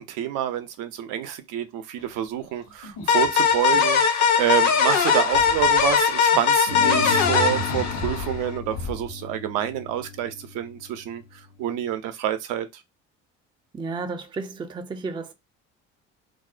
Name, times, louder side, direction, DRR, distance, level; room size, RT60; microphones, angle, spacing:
voice 1, 0.0-11.2 11.6-12.7, right 11 dB, 65° right, 0.5 m, -28 dB
sound 1, 2.0-2.1 2.4-4.0 4.9-6.0 6.3-6.4 6.7-9.1, equal, 70° left, 1.1 m, -35 dB
sound 2, 3.1-8.5, left 6 dB, 50° left, 0.7 m, -20 dB
sound 3, 5.0-6.2 6.7-11.9, left 7 dB, 90° left, 0.6 m, -37 dB
voice 2, 13.7-15.3, right 4 dB, 15° right, 0.4 m, -32 dB
2.5 x 2.0 x 2.4 m
hypercardioid pair, 65°, 35 cm